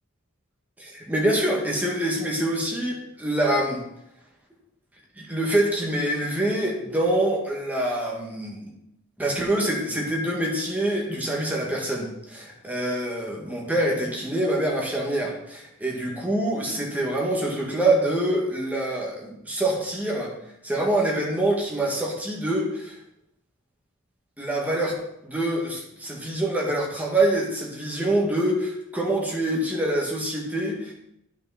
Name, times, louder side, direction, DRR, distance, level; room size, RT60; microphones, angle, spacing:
voice 1, 0.8-3.8 5.2-8.7 9.2-20.3 20.6-23.0 24.4-25.0 25.2-30.9, right 1 dB, 10° right, -2 dB, 1.9 m, -25 dB
10.5 x 6.0 x 4.2 m, 0.79 s
head